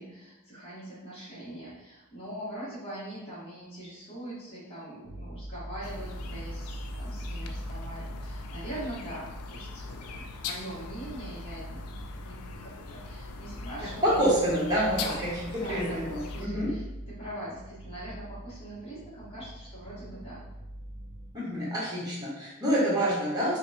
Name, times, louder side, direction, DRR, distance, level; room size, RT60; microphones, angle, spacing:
voice 1, 0.0-11.8 12.2-14.5 15.0-16.8 17.1-20.4, right 1 dB, 25° left, -10 dB, 1.0 m, -42 dB
sound 1, 5.0-21.3, right 1 dB, 35° right, 0.6 m, -42 dB
sound 2, 5.8-16.5, left 5 dB, 85° left, 0.4 m, -42 dB
voice 2, 13.8-16.7 21.3-23.6, equal, 15° right, -8 dB, 1.2 m, -27 dB
5.1 x 2.2 x 2.7 m, 0.99 s
head